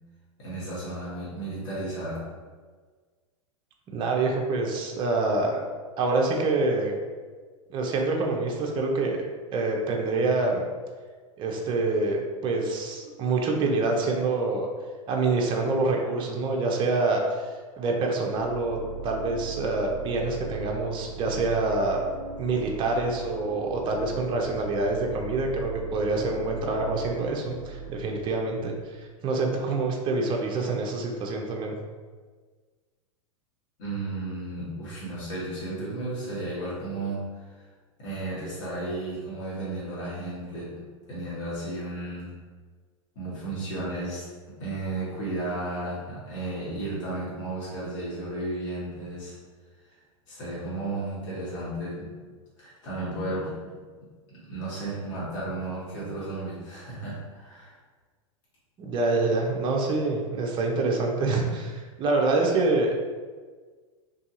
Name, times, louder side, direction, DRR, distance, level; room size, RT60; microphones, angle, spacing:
voice 1, 0.4-2.3 33.8-37.6 38.0-42.4 43.1-44.3 44.6-49.4 50.3-52.2 52.6-53.7 54.5-57.8, right 2 dB, 65° left, -9 dB, 1.4 m, -34 dB
voice 2, 3.9-5.6 6.0-6.9 7.7-9.2 9.5-10.6 11.4-14.7 15.1-17.5 17.8-18.8 19.0-22.0 22.4-31.7 58.8-62.9, right 3 dB, 30° right, 1 dB, 0.5 m, -26 dB
sound 1, 18.3-29.1, right 5 dB, 90° right, 0.4 m, -39 dB
2.6 x 2.6 x 2.5 m, 1.5 s
hypercardioid pair, 100°, 17 cm